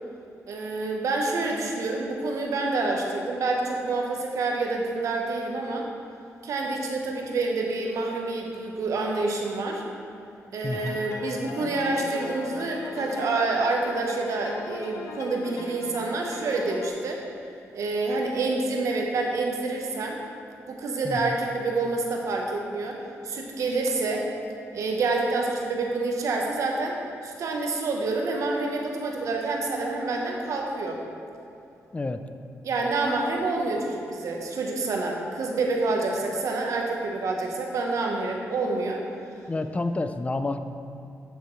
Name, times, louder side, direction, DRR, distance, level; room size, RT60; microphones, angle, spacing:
voice 1, 0.5-5.9 6.4-9.8 10.5-17.2 17.7-20.2 20.7-24.3 24.7-27.0 27.2-31.0 32.6-39.0, right 3 dB, 75° right, 0 dB, 1.1 m, -27 dB
voice 2, 10.6-11.0 21.0-21.4 31.9-32.2 39.5-40.6, left 2 dB, 25° left, 9 dB, 0.5 m, -29 dB
sound 1, 10.7-16.9, left 4 dB, 85° left, 0.6 m, -39 dB
8.4 x 7.4 x 3.2 m, 2.6 s
cardioid pair, 70°, 6 cm